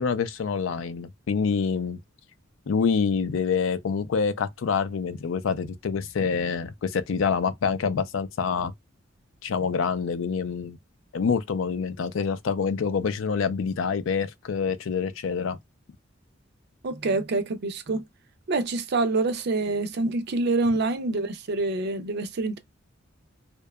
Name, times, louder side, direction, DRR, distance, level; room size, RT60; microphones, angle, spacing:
voice 1, 0.0-2.0 2.7-8.7 9.4-10.8 11.1-15.6, left 6 dB, 85° left, 0.4 m, -26 dB
voice 2, 16.8-18.0 18.5-22.6, right 3 dB, 55° right, 0.5 m, -26 dB
2.7 x 2.2 x 2.2 m
head